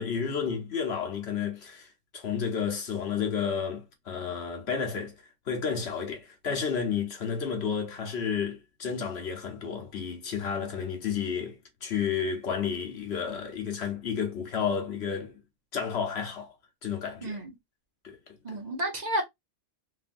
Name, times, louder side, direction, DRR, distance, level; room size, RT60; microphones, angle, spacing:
voice 1, 0.0-15.4 15.7-16.5 16.8-17.4 18.0-18.2 18.5-18.6, left 6 dB, 60° left, 1.1 m, -31 dB
voice 2, 18.4-19.2, right 1 dB, 40° right, 0.7 m, -31 dB
3.2 x 2.6 x 2.5 m
omnidirectional pair, 1.3 m